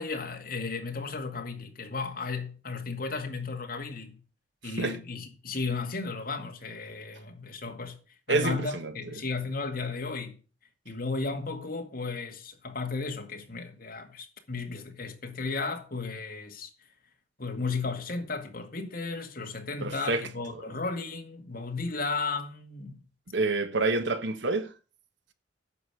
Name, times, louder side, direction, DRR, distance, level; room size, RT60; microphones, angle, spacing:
voice 1, 0.0-4.2 4.6-8.0 8.3-10.4 10.9-16.7 17.4-23.0, left 4 dB, 50° left, 2.1 m, -34 dB
voice 2, 4.6-5.0 8.3-8.9 19.8-20.2 23.3-24.7, right 3 dB, 75° right, 1.1 m, -28 dB
9.4 x 6.4 x 6.8 m
head